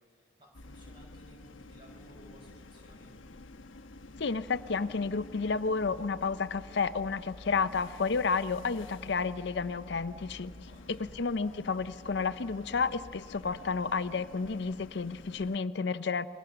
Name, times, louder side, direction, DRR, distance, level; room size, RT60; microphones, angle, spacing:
voice 1, 0.0-3.2 10.6-11.2, equal, 25° right, -2 dB, 6.8 m, -58 dB
sound 1, 0.5-15.6, left 2 dB, 80° left, 1.0 m, -50 dB
voice 2, 4.2-10.5 10.9-16.3, left 4 dB, 60° left, 12 dB, 0.5 m, -31 dB
29.0 x 22.0 x 6.8 m, 2.2 s
head